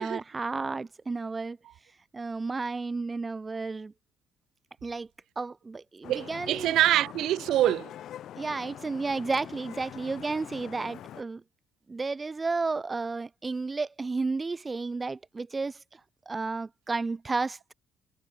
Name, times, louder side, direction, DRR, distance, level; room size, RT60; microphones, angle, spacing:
voice 1, 0.0-1.6 2.1-3.9 4.8-5.1 5.4-6.7 8.4-11.4 11.9-15.8 16.3-17.6, right 3 dB, 25° right, 2.9 m, -32 dB
Vehicle horn car horn honking / Traffic noise roadway noise, 6.0-11.2, left 11 dB, 65° left, 5.8 m, -44 dB
voice 2, 6.1-7.9, right 13 dB, 70° right, 4.7 m, -25 dB
cardioid pair, 90°, 0 cm